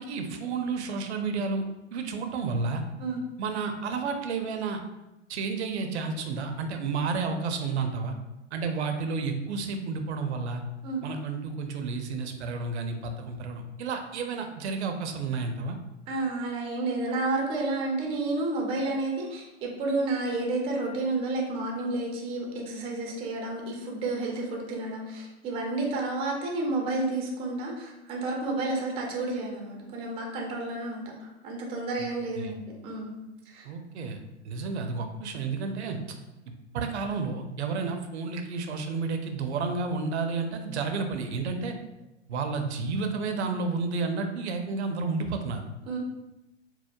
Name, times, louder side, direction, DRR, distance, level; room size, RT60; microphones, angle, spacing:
voice 1, 0.0-1.6 1.9-2.8 3.4-4.8 5.3-8.1 8.5-10.6 11.0-15.8 32.4-32.5 33.6-34.2 34.4-36.0 36.7-41.7 42.3-45.6, right 4 dB, 70° right, 5 dB, 0.5 m, -31 dB
voice 2, 16.1-32.6 32.8-33.2 33.5-33.7 45.9-46.0, right 2 dB, 15° right, 0 dB, 0.4 m, -31 dB
4.4 x 2.0 x 2.2 m, 0.97 s
hypercardioid pair, 115°, 35 cm